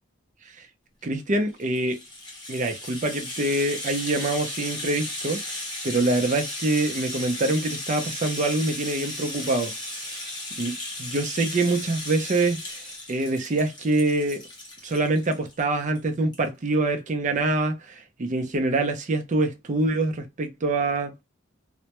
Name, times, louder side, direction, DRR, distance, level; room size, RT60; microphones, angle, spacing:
voice 1, 1.0-2.0 2.5-9.7 10.6-14.4 14.8-21.1, right 2 dB, 40° right, 0.5 m, -25 dB
Rattle (instrument), 1.5-15.6 15.9-16.0 16.3-16.5, left 1 dB, 25° left, 0.8 m, -35 dB
2.2 x 2.1 x 2.8 m
head